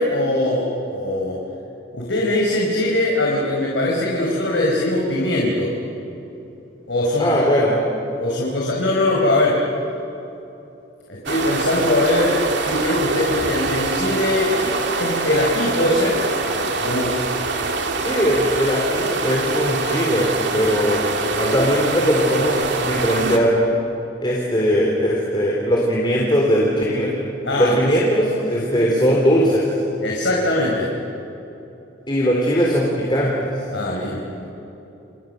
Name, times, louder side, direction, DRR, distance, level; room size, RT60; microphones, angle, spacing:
voice 1, 0.0-1.4 1.9-5.7 6.9-7.3 8.2-9.6 11.1-14.6 15.0-16.2 16.8-17.2 21.4-21.5 27.4-27.8 28.5-28.8 30.0-30.9 33.7-34.4, left 1 dB, 80° left, -3 dB, 4.7 m, -21 dB
voice 2, 7.2-7.8 18.0-20.3 20.5-21.0 21.3-23.5 24.2-27.1 27.6-29.6 32.1-33.5, equal, 25° left, -3 dB, 3.7 m, -19 dB
sound 1, 11.3-23.4, right 3 dB, 70° right, 2.4 m, -24 dB
29.5 x 29.5 x 6.8 m, 2.9 s
head